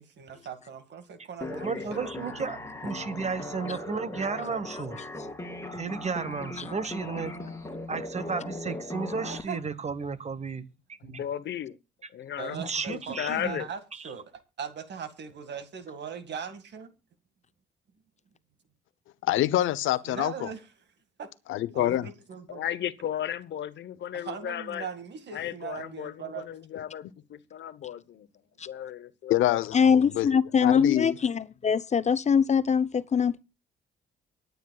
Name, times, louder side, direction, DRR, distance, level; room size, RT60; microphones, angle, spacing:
voice 1, 0.0-2.1 4.0-4.1 9.2-9.6 12.4-14.3 14.6-16.9 20.1-20.6 21.2-21.3 21.7-22.6 24.1-26.5, right 7 dB, 60° right, 2.1 m, -40 dB
sound 1, 1.4-9.4, left 2 dB, 15° left, 2.8 m, -38 dB
voice 2, 1.5-5.0 5.7-7.3 7.9-10.6 11.0-11.2 12.5-13.6 13.9-14.1, right 5 dB, 35° right, 1.3 m, -33 dB
voice 3, 11.0-11.8 12.1-12.6 12.9-13.7 22.5-24.9 25.3-28.3 28.6-29.6, left 10 dB, 65° left, 1.0 m, -35 dB
voice 4, 19.2-20.5 21.5-22.1 29.3-31.1, left 14 dB, 85° left, 0.8 m, -26 dB
voice 5, 29.7-33.4, left 6 dB, 35° left, 0.7 m, -23 dB
24.5 x 9.2 x 2.4 m
cardioid pair, 90°, 20 cm